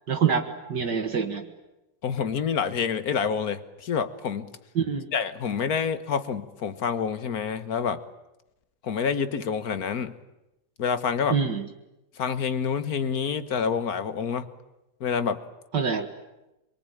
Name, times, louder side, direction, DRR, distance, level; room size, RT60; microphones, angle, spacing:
voice 1, 0.1-1.5 4.8-5.1 11.3-11.7 15.7-16.1, right 6 dB, 65° right, 5 dB, 2.3 m, -25 dB
voice 2, 2.0-4.5 5.1-8.0 8.8-10.1 10.8-11.4 12.2-14.5 15.0-15.4, left 6 dB, 55° left, 11 dB, 1.7 m, -27 dB
26.0 x 23.5 x 9.2 m, 0.95 s
omnidirectional pair, 2.0 m